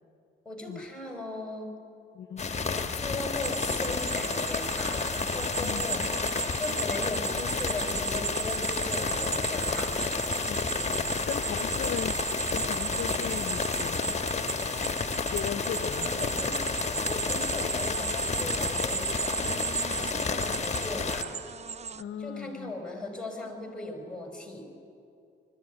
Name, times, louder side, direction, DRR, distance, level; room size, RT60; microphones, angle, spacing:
voice 1, 0.5-1.7 3.0-6.0 6.3-10.1 15.6-16.6 17.1-21.4 22.2-24.6, left 2 dB, 5° left, 2 dB, 5.4 m, -38 dB
sound 1, 2.4-21.2, left 5 dB, 35° left, 1.4 m, -31 dB
sound 2, 3.4-22.0, right 6 dB, 35° right, 0.6 m, -35 dB
voice 2, 5.6-6.1 10.5-10.9 11.3-12.1 12.5-14.6 15.3-16.1 22.0-22.7, left 10 dB, 70° left, 15 dB, 0.8 m, -38 dB
20.5 x 14.0 x 9.6 m, 2.6 s
cardioid pair, 65°, 20 cm